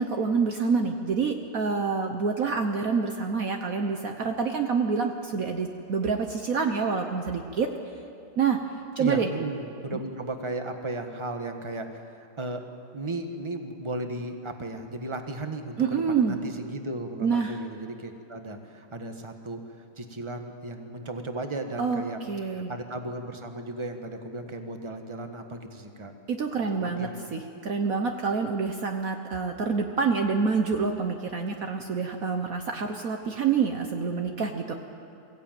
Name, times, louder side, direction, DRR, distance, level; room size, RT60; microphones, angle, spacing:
voice 1, 0.0-7.7 8.4-8.6 9.0-9.3 9.9-10.0 15.8-16.4 17.2-17.6 21.8-22.0 22.3-22.7 26.3-34.7, right 5 dB, 55° right, 4 dB, 1.4 m, -27 dB
voice 2, 9.0-12.7 12.9-26.1 26.8-27.3 27.5-27.7, right 2 dB, 20° right, 5 dB, 1.3 m, -35 dB
22.5 x 16.0 x 9.1 m, 2.7 s
omnidirectional pair, 1.8 m